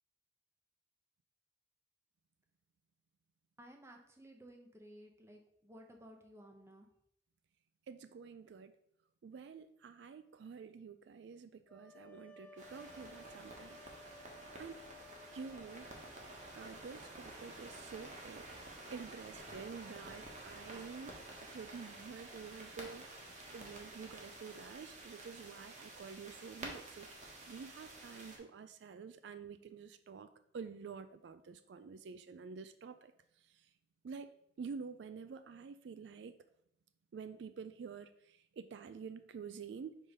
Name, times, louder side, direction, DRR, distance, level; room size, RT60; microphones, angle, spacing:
voice 1, 3.6-6.9, equal, 15° right, 2 dB, 0.7 m, -56 dB
voice 2, 7.9-8.7 9.2-13.8 14.6-14.8 15.3-15.9 16.5-18.5 18.9-21.1 21.5-23.0 23.5-30.3 30.5-33.1 33.5-33.7 34.0-34.3 34.6-36.4 37.1-40.0, right 5 dB, 70° right, 11 dB, 0.3 m, -49 dB
sound 1, 11.7-17.6, left 2 dB, 10° left, 0.3 m, -58 dB
sound 2, 12.6-28.4, right 2 dB, 40° right, 1.2 m, -51 dB
5.1 x 3.7 x 5.3 m, 0.74 s
head